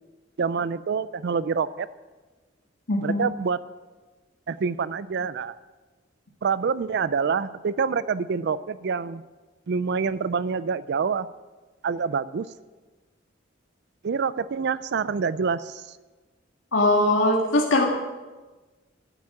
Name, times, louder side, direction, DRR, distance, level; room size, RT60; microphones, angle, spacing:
voice 1, 0.4-1.9 3.0-3.6 4.5-5.6 6.4-9.2 9.7-11.3 11.8-12.5 14.0-16.0, right 5 dB, 60° right, 16 dB, 0.4 m, -26 dB
voice 2, 2.9-3.2 16.7-17.8, left 1 dB, 75° left, -1 dB, 1.9 m, -21 dB
13.5 x 8.1 x 8.7 m, 1.3 s
head